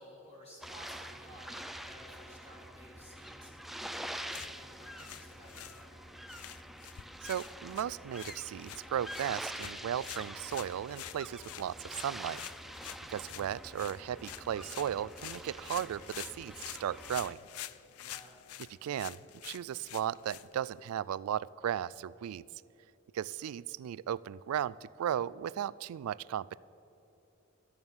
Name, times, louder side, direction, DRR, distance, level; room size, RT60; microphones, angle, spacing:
voice 1, 0.0-3.8 4.1-6.0 13.0-13.4 18.0-18.4, equal, 30° left, -3 dB, 1.9 m, -55 dB
sound 1, 0.6-17.3, equal, ahead, 0.4 m, -46 dB
sound 2, 4.2-21.0, left 13 dB, 90° left, 0.4 m, -48 dB
voice 2, 7.2-12.4 13.1-17.4 18.8-22.4 23.1-26.6, right 10 dB, 85° right, 19 dB, 0.3 m, -36 dB
13.0 x 9.5 x 7.1 m, 2.9 s
head